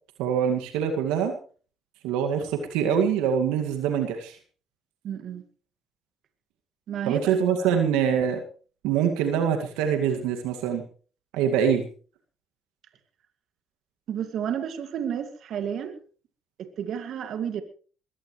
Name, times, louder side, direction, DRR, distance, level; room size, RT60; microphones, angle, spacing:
voice 1, 0.2-1.3 2.0-4.4 7.0-8.4 8.8-10.8 11.3-11.9, right 8 dB, 85° right, 5 dB, 2.1 m, -24 dB
voice 2, 5.0-5.4 6.9-7.8 14.1-16.0 16.6-17.6, right 8 dB, 65° right, 8 dB, 2.2 m, -31 dB
21.5 x 16.5 x 3.2 m, 0.40 s
supercardioid pair, 60°, 0 cm